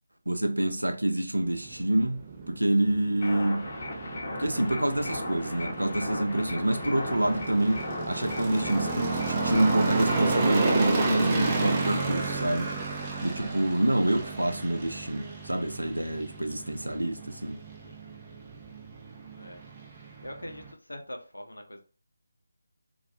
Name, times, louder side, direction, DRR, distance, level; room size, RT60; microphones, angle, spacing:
voice 1, 0.3-3.7 4.4-12.7 13.2-17.6, right 1 dB, 90° right, 0.4 m, -27 dB
sound 1, 1.4-20.7, right 3 dB, 20° right, 0.4 m, -32 dB
sound 2, 3.2-10.3, left 2 dB, 35° left, 0.7 m, -37 dB
voice 2, 17.8-18.2 19.4-19.6 20.0-21.8, left 1 dB, 85° left, 0.5 m, -44 dB
2.3 x 2.1 x 2.6 m
figure-of-eight pair, 155°, 0 cm